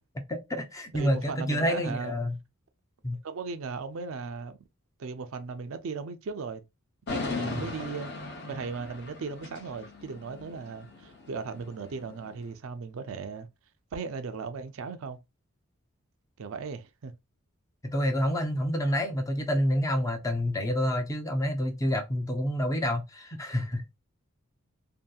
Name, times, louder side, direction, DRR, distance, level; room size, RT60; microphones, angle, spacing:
voice 1, 0.3-2.4 3.0-3.2 17.8-24.0, equal, 15° left, 0.4 m, -28 dB
voice 2, 0.9-2.1 3.2-4.6 5.0-6.6 7.1-8.1 8.5-13.5 13.9-15.2 16.4-17.1, right 4 dB, 70° right, 0.4 m, -37 dB
sound 1, 7.1-12.4, left 3 dB, 50° left, 0.7 m, -38 dB
2.7 x 2.6 x 2.2 m
head